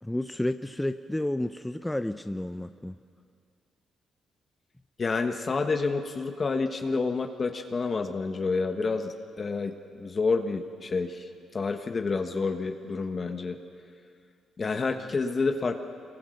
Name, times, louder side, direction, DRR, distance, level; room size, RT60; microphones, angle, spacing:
voice 1, 0.0-3.0, left 1 dB, 10° left, 9 dB, 0.6 m, -31 dB
voice 2, 5.0-13.6 14.6-15.8, left 4 dB, 35° left, 6 dB, 1.3 m, -29 dB
25.0 x 22.5 x 6.5 m, 2.3 s
cardioid pair, 90°, 0 cm